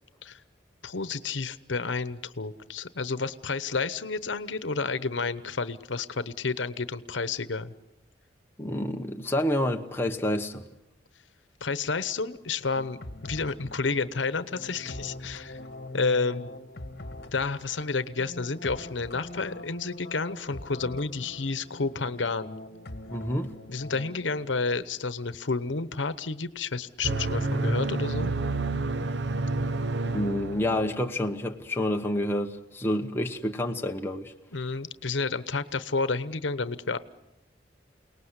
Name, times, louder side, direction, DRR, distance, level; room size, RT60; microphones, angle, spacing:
voice 1, 0.8-7.7 11.6-15.6 15.9-16.5 17.3-22.5 23.7-28.3 34.5-37.0, left 4 dB, 85° left, 1.0 m, -30 dB
voice 2, 8.6-10.6 23.1-23.5 30.1-34.3, left 1 dB, 10° left, 1.1 m, -28 dB
sound 1, 12.7-24.6, left 1 dB, 60° left, 1.6 m, -43 dB
sound 2, 27.0-31.1, right 3 dB, 70° right, 0.8 m, -29 dB
29.0 x 19.0 x 8.2 m
head